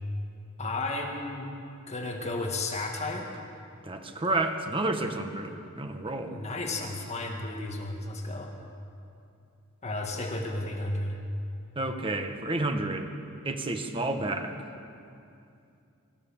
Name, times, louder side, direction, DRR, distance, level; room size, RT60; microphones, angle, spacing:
voice 1, 0.6-1.5 1.9-3.4 6.3-8.5 9.8-11.2, left 2 dB, 30° left, 1 dB, 1.9 m, -33 dB
voice 2, 3.8-6.4 11.7-13.1 13.4-14.6, right 2 dB, 25° right, 6 dB, 1.4 m, -30 dB
24.5 x 14.5 x 7.3 m, 2.6 s
head